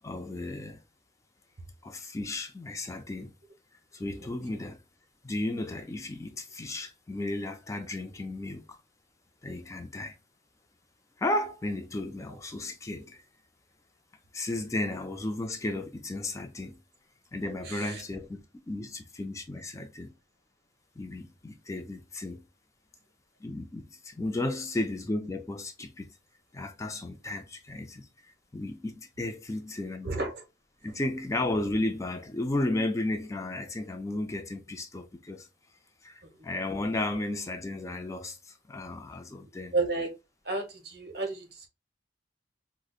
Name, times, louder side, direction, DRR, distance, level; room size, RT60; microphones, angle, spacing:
voice 1, 0.0-0.8 1.8-3.3 3.9-4.8 5.2-8.8 9.4-10.1 11.2-13.2 14.3-16.8 17.3-20.1 21.0-22.4 23.4-26.1 26.5-30.1 30.8-35.5 36.0-39.7, left 2 dB, 15° left, 0.3 m, -34 dB
voice 2, 17.6-18.0 30.0-30.4 39.7-40.1 40.4-41.7, right 3 dB, 60° right, 1.0 m, -32 dB
4.8 x 2.0 x 2.3 m
head